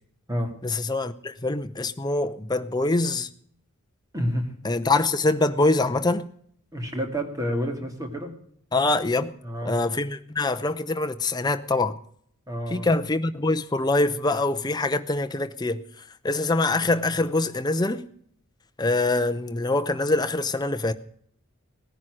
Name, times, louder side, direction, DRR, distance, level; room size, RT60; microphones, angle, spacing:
voice 1, 0.6-3.3 4.6-6.3 8.7-9.3 9.6-11.9 12.7-15.8 16.2-18.0 18.8-20.9, left 2 dB, 20° left, 0.7 m, -24 dB
voice 2, 4.1-4.5 6.7-8.3 9.4-9.8 12.5-12.9, equal, 15° right, 2.3 m, -29 dB
18.0 x 10.5 x 6.3 m
head